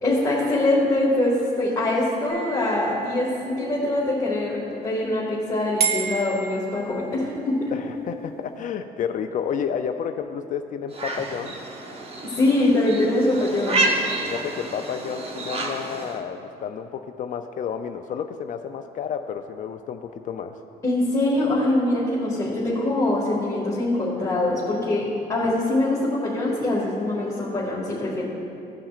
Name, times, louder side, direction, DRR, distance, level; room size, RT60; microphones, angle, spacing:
voice 1, 0.0-7.7 12.2-13.9 20.8-28.2, left 1 dB, 20° left, -8 dB, 1.9 m, -23 dB
sound 1, 2.3-3.8 5.8-7.4, right 6 dB, 65° right, 1.4 m, -31 dB
voice 2, 7.7-11.6 14.2-20.6 25.4-25.6, left 7 dB, 50° left, 7 dB, 0.4 m, -31 dB
sound 2, 10.9-16.2, right 2 dB, 35° right, 1.0 m, -29 dB
16.5 x 5.8 x 2.5 m, 2.6 s
cardioid pair, 110°, 17 cm